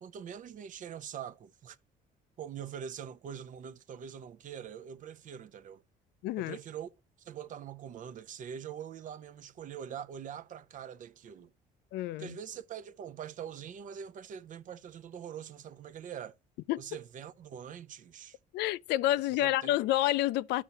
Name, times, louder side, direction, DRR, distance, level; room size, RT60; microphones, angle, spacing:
voice 1, 0.0-1.8 2.4-5.8 6.4-6.9 7.2-11.5 12.2-16.4 16.8-18.4 19.3-19.8, right 8 dB, 50° right, 0.7 m, -43 dB
voice 2, 6.2-6.6 11.9-12.4 16.7-16.8 18.5-20.6, left 14 dB, 80° left, 0.4 m, -29 dB
12.0 x 5.8 x 2.8 m
cardioid pair, 110°, 17 cm